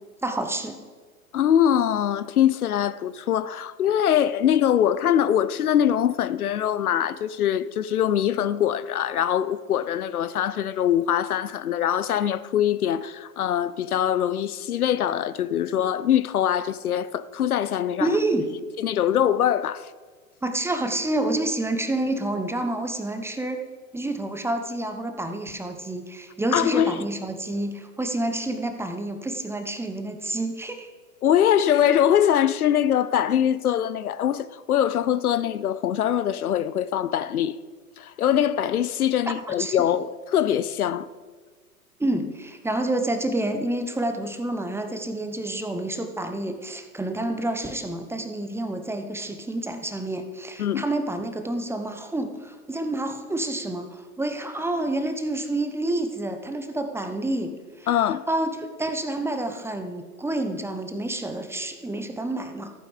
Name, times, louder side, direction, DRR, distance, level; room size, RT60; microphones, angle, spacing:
voice 1, 0.2-0.8 18.0-18.5 20.4-23.6 23.9-30.9 39.3-39.8 42.0-62.7, right 1 dB, 5° right, 0.9 m, -28 dB
voice 2, 1.3-18.1 18.8-19.8 26.5-26.9 31.2-37.5 38.0-41.1 50.6-50.9 57.9-58.2, left 10 dB, 80° left, 0.7 m, -23 dB
14.5 x 9.1 x 5.0 m
hypercardioid pair, 105°, 44 cm